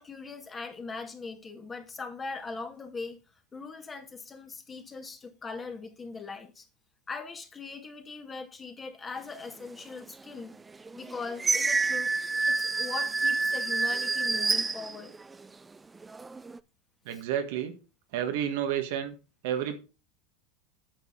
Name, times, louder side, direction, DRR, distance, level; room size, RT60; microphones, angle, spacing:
voice 1, 0.0-3.2 3.5-6.7 7.1-10.6 11.0-12.1 12.5-15.1 17.1-17.2, left 4 dB, 25° left, 2.0 m, -40 dB
sound 1, 10.0-10.1 10.7-15.5 16.0-16.6, right 3 dB, 15° right, 0.5 m, -28 dB
voice 2, 17.1-17.8 18.1-19.1 19.4-19.8, right 10 dB, 70° right, 1.5 m, -30 dB
9.2 x 6.9 x 3.9 m
hypercardioid pair, 95°, 0 cm